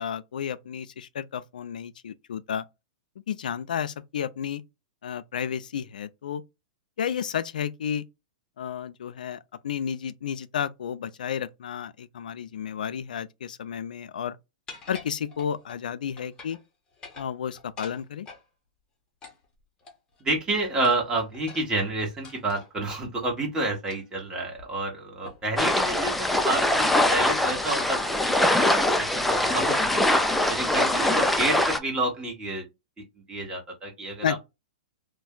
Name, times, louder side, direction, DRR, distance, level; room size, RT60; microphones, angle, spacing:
voice 1, 0.0-2.6 3.3-4.6 5.0-6.4 7.0-8.0 8.6-14.4 14.9-16.6 17.2-18.3 34.2-34.4, left 8 dB, 85° left, 0.3 m, -32 dB
sound 1, 14.7-15.8 16.2-16.6 16.9-18.5 19.2-20.2 20.8-23.0 23.9-24.2 24.6-24.7 25.2-25.5 25.8-26.0 26.5-26.9, left 4 dB, 20° left, 0.8 m, -46 dB
voice 2, 20.2-30.0 30.5-32.7 33.3-34.4, right 2 dB, 15° right, 1.2 m, -29 dB
sound 2, 25.6-31.8, left 1 dB, ahead, 0.3 m, -23 dB
2.5 x 2.2 x 3.6 m
hypercardioid pair, 140°, 4 cm